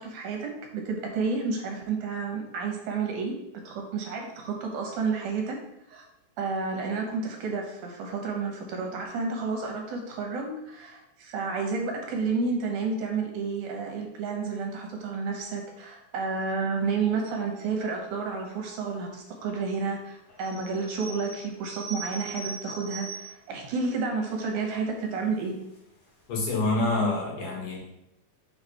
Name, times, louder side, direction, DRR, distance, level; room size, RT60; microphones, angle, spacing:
voice 1, 0.0-5.6 5.9-6.0 6.4-25.6, right 4 dB, 75° right, 1 dB, 2.4 m, -31 dB
sound 1, 20.3-23.5 24.0-24.1 24.3-24.8 25.4-25.8 26.2-26.3 26.4-26.5, right 3 dB, 65° left, 0.9 m, -41 dB
voice 2, 26.3-27.8, left 2 dB, 85° left, -2 dB, 3.1 m, -26 dB
6.0 x 4.0 x 4.7 m, 0.84 s
omnidirectional pair, 3.7 m